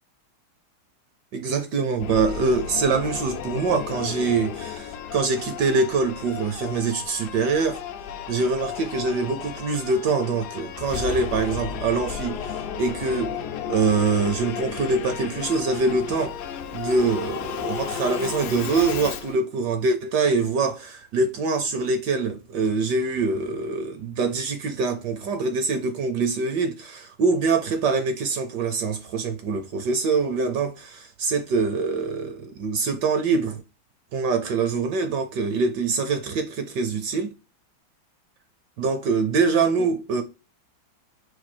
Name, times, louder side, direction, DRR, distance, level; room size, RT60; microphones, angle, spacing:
voice 1, 1.3-7.8 8.3-13.4 13.7-16.4 16.7-33.6 34.1-37.4 38.8-40.2, right 4 dB, 70° right, 1.1 m, -24 dB
Singing / Musical instrument, 2.0-19.4, left 8 dB, 75° left, 0.9 m, -33 dB
4.4 x 2.4 x 4.1 m
omnidirectional pair, 2.2 m